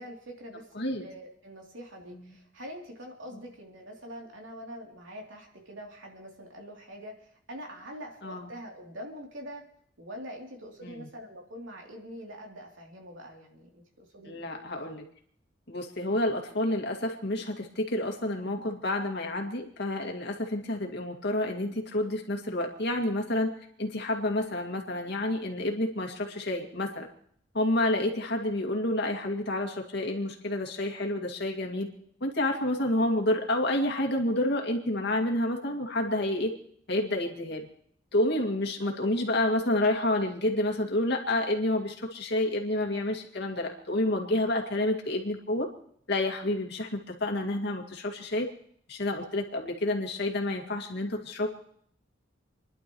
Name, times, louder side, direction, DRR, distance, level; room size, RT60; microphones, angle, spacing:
voice 1, 0.0-0.7 1.0-9.6 10.0-14.4 38.8-39.0, equal, 75° right, 0 dB, 3.1 m, -44 dB
voice 2, 0.7-1.1 2.1-2.3 8.2-8.5 10.8-11.1 14.2-15.0 15.7-23.5 23.8-27.1 27.5-31.9 32.2-36.5 36.9-37.7 38.1-45.7 46.1-48.5 48.9-51.5, left 1 dB, 60° left, 2 dB, 2.2 m, -29 dB
29.5 x 11.5 x 3.1 m, 0.64 s
head